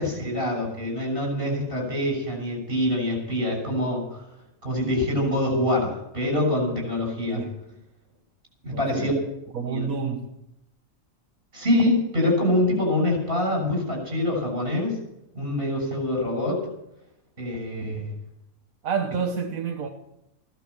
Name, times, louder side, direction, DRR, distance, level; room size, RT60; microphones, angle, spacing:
voice 1, 0.0-4.2 4.6-7.4 8.6-9.1 9.7-9.9 11.5-15.0 15.4-16.6 17.4-18.1, left 1 dB, 40° right, 7.0 m, -25 dB
voice 2, 8.7-9.1 9.5-10.3 18.8-19.9, right 6 dB, 75° right, 1.6 m, -29 dB
16.5 x 11.5 x 6.8 m
omnidirectional pair, 1.4 m